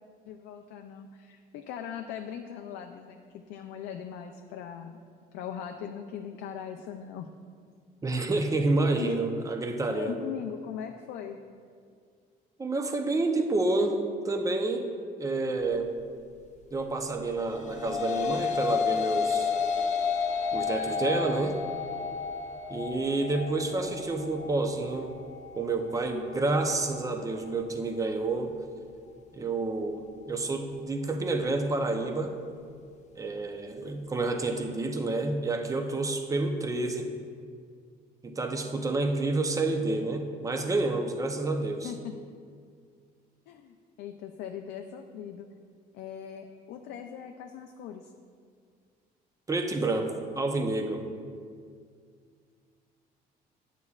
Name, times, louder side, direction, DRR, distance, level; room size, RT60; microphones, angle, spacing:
voice 1, 0.3-5.0 5.3-7.3 8.1-8.3 9.0-9.2 9.9-11.4 41.8-42.1 43.5-45.5 45.9-48.1, left 8 dB, 90° left, 5 dB, 0.4 m, -40 dB
voice 2, 8.0-10.1 12.6-14.9 15.2-15.9 16.7-19.5 20.5-21.6 22.7-25.1 25.6-28.6 29.3-32.4 33.2-37.1 38.2-41.9 49.5-51.0, right 2 dB, 20° right, 5 dB, 0.7 m, -29 dB
sound 1, 17.4-26.6, left 6 dB, 45° left, 0.7 m, -31 dB
9.7 x 8.2 x 2.4 m, 2.1 s
cardioid pair, 110°, 17 cm